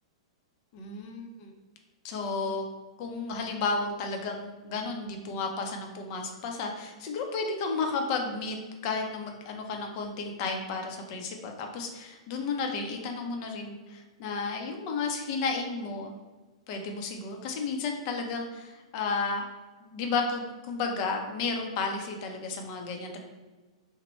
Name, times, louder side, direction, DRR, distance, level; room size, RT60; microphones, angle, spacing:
voice 1, 0.7-1.5 2.0-2.7 3.0-8.6 8.8-16.1 16.7-19.4 19.8-23.2, left 4 dB, 45° left, 3 dB, 0.6 m, -32 dB
3.1 x 2.1 x 4.1 m, 1.2 s
hypercardioid pair, 120°, 3 cm